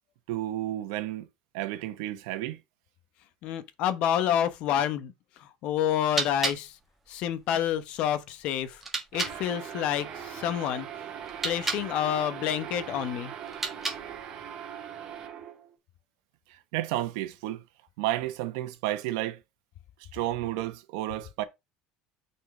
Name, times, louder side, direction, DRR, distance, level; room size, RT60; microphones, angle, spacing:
voice 1, 0.3-1.3 1.5-2.6 16.5-17.6 18.0-19.4 20.1-21.4, right 14 dB, 80° right, 1.2 m, -31 dB
voice 2, 3.4-6.8 7.1-8.8 9.1-10.9 11.4-13.3, left 10 dB, 50° left, 0.9 m, -28 dB
sound 1, 5.8-9.4 11.2-11.9 13.4-14.3, right 3 dB, 10° right, 1.6 m, -35 dB
sound 2, 9.1-15.7, right 8 dB, 35° right, 2.0 m, -40 dB
6.3 x 4.4 x 4.7 m
cardioid pair, 165°, 2 cm